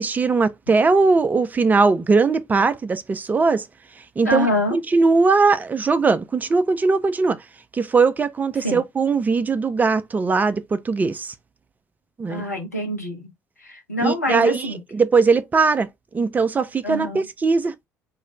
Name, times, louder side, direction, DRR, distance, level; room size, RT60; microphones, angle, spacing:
voice 1, 0.0-3.7 4.2-7.4 7.7-11.3 12.2-12.4 14.0-15.9 16.1-17.7, right 4 dB, 20° right, 0.4 m, -20 dB
voice 2, 4.2-4.8 8.6-8.8 12.3-13.3 13.6-14.8 16.8-17.2, left 1 dB, 90° left, 0.6 m, -25 dB
2.3 x 2.0 x 2.9 m
figure-of-eight pair, 50°, 9 cm